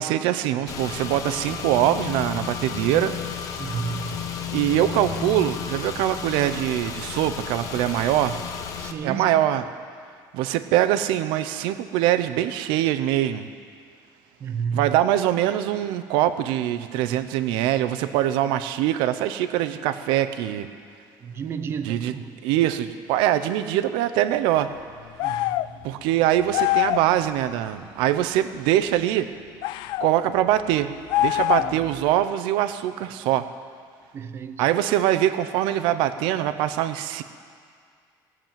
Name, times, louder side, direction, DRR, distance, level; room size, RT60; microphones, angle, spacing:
voice 1, 0.0-3.2 4.5-8.4 9.0-9.6 10.3-13.5 14.7-20.7 21.8-22.1 22.4-24.7 25.8-29.3 30.0-30.9 31.2-33.5 34.6-37.2, right 12 dB, 85° right, 11 dB, 0.7 m, -23 dB
Car / Engine, 0.7-8.9, left 7 dB, 45° left, 1.0 m, -33 dB
voice 2, 3.6-4.4 8.8-9.5 14.4-14.9 21.2-22.3 25.2-25.8 31.6-31.9 34.1-34.6, right 6 dB, 30° right, 10 dB, 0.7 m, -32 dB
sound 1, 25.2-25.7 26.5-27.1 29.6-30.1 31.1-31.9, left 16 dB, 70° left, 0.4 m, -23 dB
18.0 x 7.5 x 9.0 m, 2.1 s
cardioid pair, 170°, 8 cm